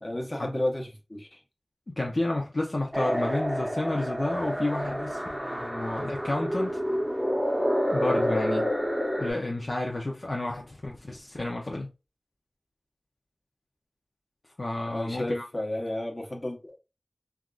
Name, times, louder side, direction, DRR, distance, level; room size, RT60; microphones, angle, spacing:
voice 1, 0.0-1.4 14.9-16.8, left 1 dB, 40° left, 1.0 m, -32 dB
voice 2, 1.9-6.8 7.9-8.7 9.2-11.9 14.6-15.4, left 2 dB, 60° left, 0.5 m, -31 dB
sound 1, 2.9-9.3, equal, 15° right, 0.7 m, -28 dB
3.4 x 2.4 x 2.3 m
wide cardioid pair, 45°, 0 cm